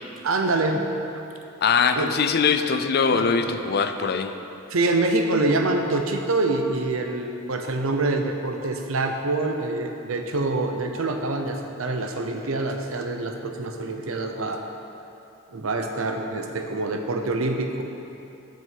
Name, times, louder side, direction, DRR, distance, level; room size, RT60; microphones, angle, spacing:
voice 1, 0.2-0.8 2.0-2.1 3.1-3.6 4.7-14.6 15.5-17.8, right 2 dB, 85° right, 4 dB, 0.8 m, -25 dB
voice 2, 1.6-4.3, left 5 dB, 50° left, 8 dB, 0.5 m, -22 dB
7.9 x 5.3 x 7.5 m, 2.8 s
head